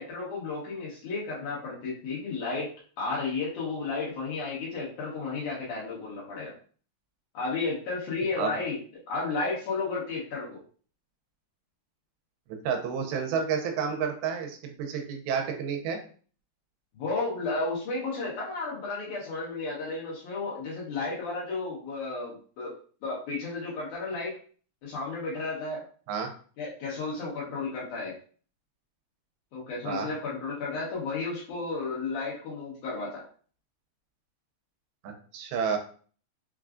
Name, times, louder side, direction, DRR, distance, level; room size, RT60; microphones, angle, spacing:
voice 1, 0.0-2.7 3.0-6.5 7.3-8.8 9.1-10.6 16.9-22.7 23.0-24.3 24.8-25.8 26.6-28.1 29.5-33.2, left 3 dB, 65° left, -6 dB, 2.2 m, -33 dB
voice 2, 12.6-16.0 26.1-26.3 29.9-30.1 35.0-35.8, right 6 dB, 85° right, 4 dB, 2.5 m, -30 dB
5.8 x 2.3 x 2.4 m, 0.43 s
omnidirectional pair, 4.4 m